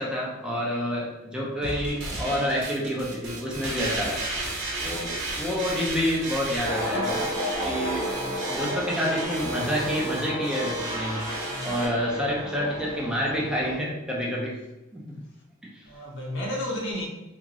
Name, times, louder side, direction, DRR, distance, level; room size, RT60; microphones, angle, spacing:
voice 1, 0.0-4.2 4.8-5.1 5.4-7.2 7.6-8.1 8.5-11.2 11.6-14.6 14.9-15.2 15.6-15.7, equal, 5° right, 0.6 m, -28 dB
sound 1, 1.6-11.9, right 2 dB, 60° right, 0.9 m, -34 dB
sound 2, 6.6-13.8, equal, 30° right, 1.1 m, -32 dB
voice 2, 8.0-8.4 11.4-11.7 15.8-17.1, left 1 dB, 60° left, 0.7 m, -33 dB
3.6 x 2.5 x 3.0 m
head